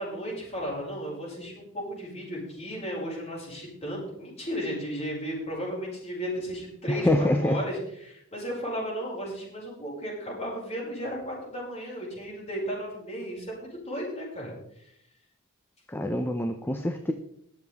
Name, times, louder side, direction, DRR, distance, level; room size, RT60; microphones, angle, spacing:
voice 1, 0.0-14.9, equal, 30° left, -4 dB, 5.8 m, -34 dB
voice 2, 6.9-7.6 15.9-17.1, left 1 dB, 10° left, 6 dB, 0.7 m, -25 dB
21.0 x 7.4 x 3.5 m, 0.74 s
head